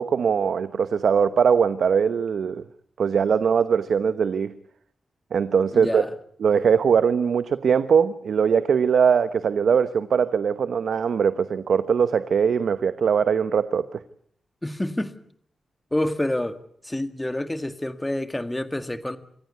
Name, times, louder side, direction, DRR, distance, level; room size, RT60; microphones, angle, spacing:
voice 1, 0.0-2.6 3.0-4.5 5.3-6.0 6.4-14.0, right 6 dB, 75° right, 0.9 m, -21 dB
voice 2, 5.7-6.1 14.6-15.1 15.9-16.6 16.8-19.2, left 1 dB, 10° left, 1.8 m, -27 dB
27.0 x 14.5 x 9.5 m
cardioid pair, 90°, 0 cm